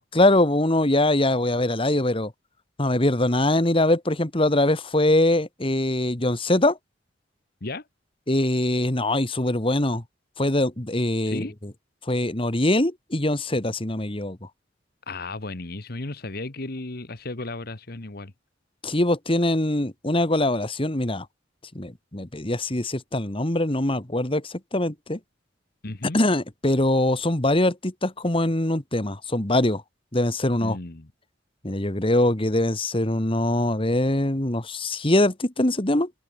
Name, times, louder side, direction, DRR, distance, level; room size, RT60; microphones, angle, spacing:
voice 1, 0.1-2.3 2.8-6.8 8.3-10.0 10.4-11.7 12.1-14.5 18.8-21.3 21.8-25.2 26.1-29.8 30.1-30.8 31.6-36.1, left 1 dB, 30° left, 1.9 m, -23 dB
voice 2, 15.1-18.3 25.8-26.2 30.6-31.1, left 2 dB, 50° left, 1.5 m, -34 dB
open air
head